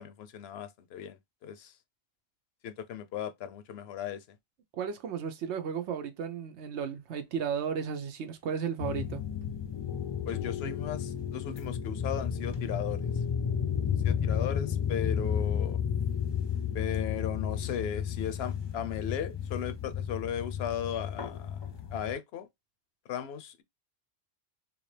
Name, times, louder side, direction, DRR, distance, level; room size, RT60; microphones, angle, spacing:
voice 1, 0.0-1.7 2.6-4.2 10.3-13.1 14.0-15.8 16.7-22.5 23.1-23.6, left 9 dB, 70° left, 0.8 m, -36 dB
voice 2, 4.7-9.2, right 7 dB, 80° right, 0.9 m, -34 dB
sound 1, 8.8-22.1, left 8 dB, 40° left, 0.4 m, -32 dB
3.4 x 2.6 x 3.2 m
omnidirectional pair, 1.1 m